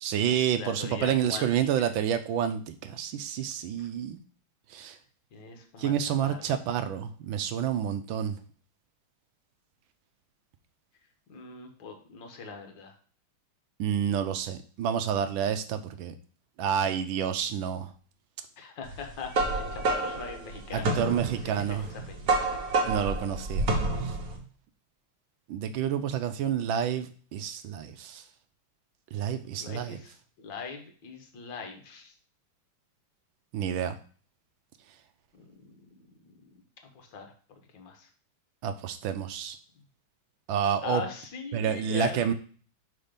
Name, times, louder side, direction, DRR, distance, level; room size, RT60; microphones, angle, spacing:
voice 1, 0.0-4.2 4.7-5.0 5.8-8.4 13.8-16.1 16.6-17.9 20.7-21.9 22.8-23.7 24.0-24.2 25.5-28.2 29.1-30.0 33.5-34.0 38.6-39.6 40.5-41.0 41.5-42.3, right 9 dB, 75° right, 10 dB, 1.2 m, -29 dB
voice 2, 0.5-1.9 3.8-3.9 5.3-6.0 6.2-6.4 11.3-13.0 18.6-21.1 21.4-22.5 29.6-32.2 35.3-36.6 36.8-38.1 40.8-42.3, left 5 dB, 65° left, 4 dB, 1.8 m, -41 dB
sound 1, 18.9-24.4, right 3 dB, 50° right, 1.4 m, -29 dB
5.7 x 4.1 x 5.1 m, 0.42 s
omnidirectional pair, 2.4 m